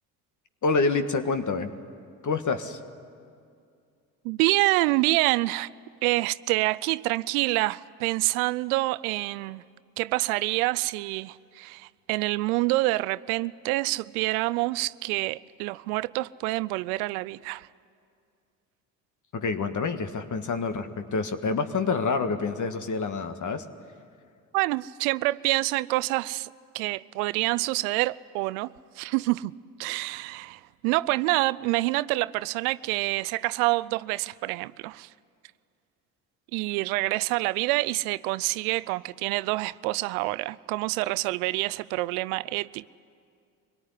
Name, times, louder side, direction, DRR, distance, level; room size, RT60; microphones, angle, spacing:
voice 1, 0.6-1.7 2.2-2.8 19.3-23.6, left 4 dB, 40° left, 1.7 m, -27 dB
voice 2, 4.2-5.7 6.0-9.6 10.0-17.7 24.5-29.5 29.8-35.1 36.5-42.8, right 21 dB, 75° right, 0.6 m, -27 dB
23.5 x 18.5 x 9.8 m
hypercardioid pair, 55°, 44 cm